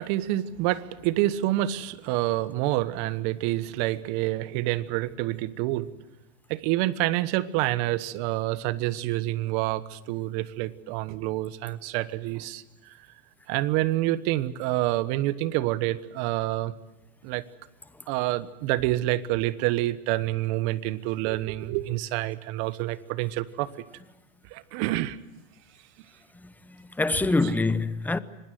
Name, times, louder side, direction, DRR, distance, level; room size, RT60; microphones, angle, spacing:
voice 1, 0.0-5.9 6.5-13.0 13.5-16.7 17.2-17.4 18.1-23.8 24.5-25.2, right 16 dB, 50° right, 1.3 m, -27 dB
voice 2, 26.4-28.2, left 3 dB, 5° left, 0.8 m, -26 dB
25.5 x 20.0 x 7.8 m
supercardioid pair, 130°, 39 cm